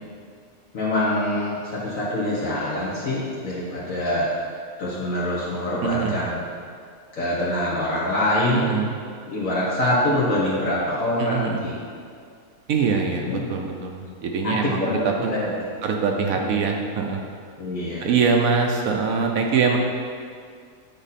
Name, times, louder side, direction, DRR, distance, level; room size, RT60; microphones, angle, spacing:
voice 1, 0.7-4.4 4.8-6.4 7.1-8.7 9.3-11.7 13.3-13.5 14.4-15.0 15.3-15.5 16.3-16.7 17.6-18.1, left 1 dB, 65° left, -7 dB, 1.6 m, -25 dB
voice 2, 5.8-6.1 8.5-8.9 11.2-11.6 12.7-15.4 15.8-17.2 18.0-19.8, right 5 dB, 70° right, 1 dB, 1.1 m, -23 dB
9.0 x 4.1 x 4.1 m, 2.1 s
omnidirectional pair, 1.6 m